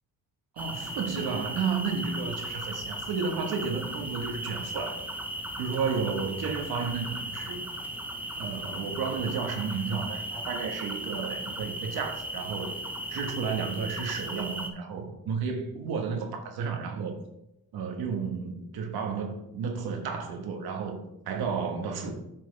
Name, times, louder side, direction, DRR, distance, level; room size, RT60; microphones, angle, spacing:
sound 1, 0.6-14.7, right 1 dB, 5° right, 0.9 m, -37 dB
voice 1, 0.6-5.0 5.6-7.6 8.4-12.7 13.1-17.2 17.7-22.1, right 5 dB, 85° right, 4 dB, 1.5 m, -32 dB
8.7 x 6.1 x 3.4 m, 0.82 s
cardioid pair, 115°, 36 cm